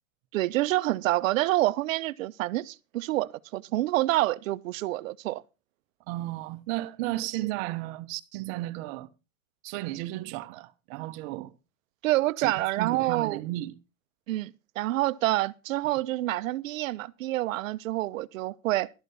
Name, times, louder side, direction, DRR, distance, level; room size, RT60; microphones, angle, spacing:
voice 1, 0.3-5.4 12.0-13.4 14.3-18.9, right 17 dB, 70° right, 0.9 m, -27 dB
voice 2, 6.1-9.1 9.6-11.5 12.4-13.8, right 17 dB, 50° right, 1.2 m, -34 dB
12.5 x 9.2 x 5.5 m
supercardioid pair, 140°, 40 cm